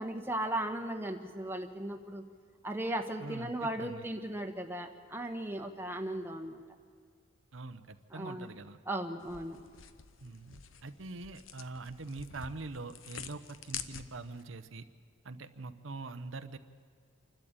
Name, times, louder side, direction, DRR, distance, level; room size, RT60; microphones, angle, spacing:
voice 1, 0.0-2.2 2.6-6.6 8.1-8.5 8.9-9.6, right 1 dB, 10° right, 4 dB, 1.2 m, -37 dB
voice 2, 3.2-4.1 7.5-8.8 10.2-14.9 15.2-16.6, right 3 dB, 70° right, 10 dB, 0.8 m, -44 dB
sound 1, 9.2-14.4, left 8 dB, 80° left, 0.9 m, -47 dB
27.5 x 12.5 x 8.8 m, 2.1 s
head